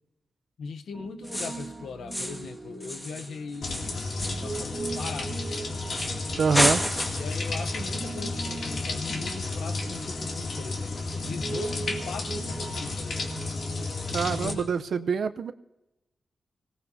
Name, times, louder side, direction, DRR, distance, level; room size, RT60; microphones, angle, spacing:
voice 1, 0.6-5.4 7.2-13.5 14.2-14.7, left 5 dB, 75° left, 0.8 m, -40 dB
Piano, 0.9-14.6, right 3 dB, 30° right, 1.0 m, -41 dB
sound 1, 1.2-1.7 2.1-2.5 2.8-5.5 5.9-6.2 6.5-7.4, equal, 10° left, 1.4 m, -30 dB
sound 2, 3.6-14.5, left 3 dB, 55° left, 2.3 m, -32 dB
voice 2, 6.4-6.8 14.1-15.5, right 5 dB, 60° right, 0.5 m, -25 dB
25.0 x 18.0 x 2.6 m
wide cardioid pair, 165°, 0 cm